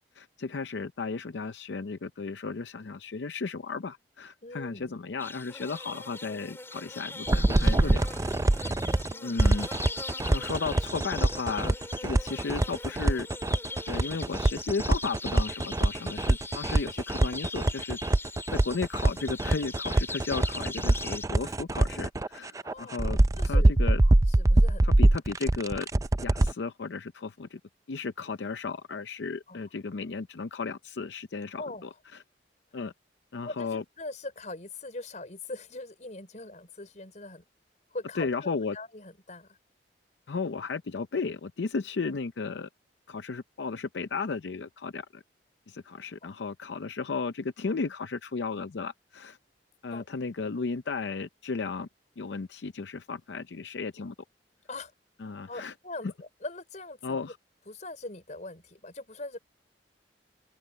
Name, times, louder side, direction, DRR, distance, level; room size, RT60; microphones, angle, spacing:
voice 1, 0.0-8.1 9.2-9.7 10.3-11.8 12.0-13.3 13.9-18.0 18.5-23.2 23.4-24.0 24.8-25.9 26.2-27.6 27.9-31.9 32.7-32.9 33.3-33.8 38.2-38.8 40.3-42.7 43.1-45.2 45.7-49.4 49.8-51.9 52.2-54.1 55.2-55.7 57.0-57.4, left 4 dB, 75° left, 0.6 m, -34 dB
voice 2, 4.4-5.0 9.1-9.4 22.6-23.1 23.4-24.9 29.5-29.6 31.6-32.0 33.4-37.4 37.9-39.6 46.2-46.4 49.9-50.1 54.7-54.9 55.5-57.2 57.7-59.4, left 2 dB, 45° left, 5.3 m, -42 dB
sound 1, 5.2-21.3, left 3 dB, 15° left, 3.9 m, -40 dB
sound 2, 7.3-9.1 9.4-26.5, right 1 dB, 20° right, 0.4 m, -24 dB
open air
head